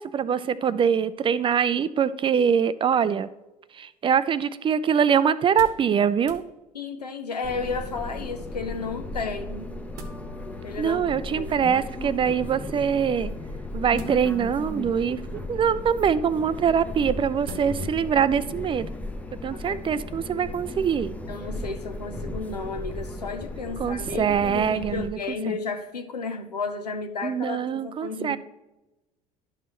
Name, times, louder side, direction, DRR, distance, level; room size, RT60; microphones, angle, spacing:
voice 1, 0.0-3.3 3.7-6.4 10.8-13.3 13.7-18.9 19.4-21.2 23.8-25.2 25.5-25.6 27.2-28.4, right 7 dB, 25° right, 15 dB, 0.4 m, -23 dB
sound 1, 5.4-5.9 6.2-6.5 7.6-8.0 9.5-10.2 11.4-11.9 13.9-14.6 15.3-15.8 17.4-17.9 18.4-18.5, right 2 dB, 65° right, 1.0 m, -44 dB
voice 2, 6.7-9.7 10.6-11.0 11.3-11.6 19.5-20.0 21.3-28.4, left 4 dB, 85° left, 6 dB, 0.7 m, -33 dB
sound 2, 7.4-25.1, left 2 dB, 5° left, 0.7 m, -36 dB
11.5 x 6.1 x 3.0 m, 1.0 s
figure-of-eight pair, 65°, 20 cm